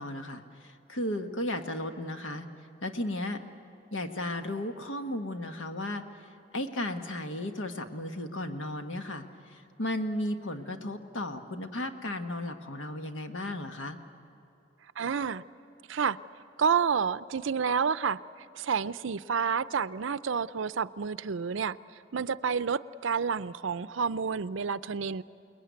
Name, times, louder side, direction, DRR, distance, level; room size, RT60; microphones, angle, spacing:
voice 1, 0.0-2.5 2.8-3.4 3.9-6.0 6.5-14.0, left 1 dB, 85° left, 6 dB, 1.5 m, -35 dB
voice 2, 15.0-15.4 15.9-16.2 16.6-18.2 18.5-21.8 22.1-25.2, right 6 dB, 85° right, 15 dB, 0.5 m, -29 dB
29.0 x 20.5 x 9.5 m, 2.7 s
head